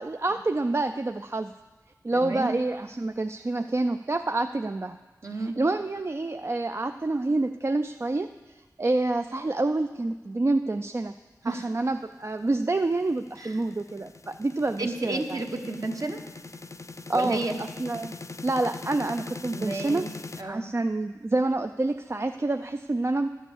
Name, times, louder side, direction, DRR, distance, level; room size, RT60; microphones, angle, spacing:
voice 1, 0.0-1.5 2.0-5.0 5.6-8.3 8.8-11.1 11.4-15.4 17.1-18.1 18.4-20.0 20.4-23.3, right 2 dB, 40° right, 7 dB, 0.4 m, -27 dB
voice 2, 2.1-2.6 5.2-5.6 11.4-11.7 13.4-13.6 14.8-16.2 17.1-17.6 19.5-20.1 20.4-20.7, right 2 dB, 55° right, 3 dB, 1.2 m, -31 dB
sound 1, 12.3-20.4, left 3 dB, 45° left, 0.5 m, -42 dB
11.5 x 7.0 x 7.2 m, 1.2 s
wide cardioid pair, 55°, 7 cm